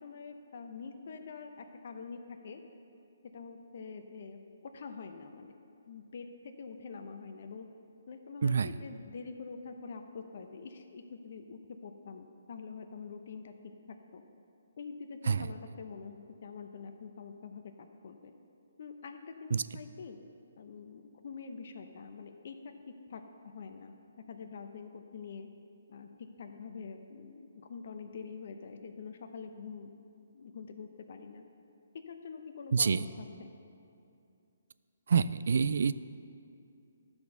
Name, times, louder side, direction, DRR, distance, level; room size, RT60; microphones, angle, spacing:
voice 1, 0.0-2.6 3.3-5.5 5.9-7.7 8.1-13.5 13.9-14.2 14.8-18.3 18.8-20.2 20.6-22.6 23.1-23.2 23.5-23.9 24.3-25.5 25.9-29.9 30.3-31.4 32.1-33.5, left 5 dB, 55° left, 5 dB, 0.6 m, -45 dB
voice 2, 32.7-33.1 35.1-35.9, right 6 dB, 65° right, 15 dB, 0.3 m, -27 dB
12.0 x 4.4 x 6.7 m, 2.5 s
hypercardioid pair, 155°, 0 cm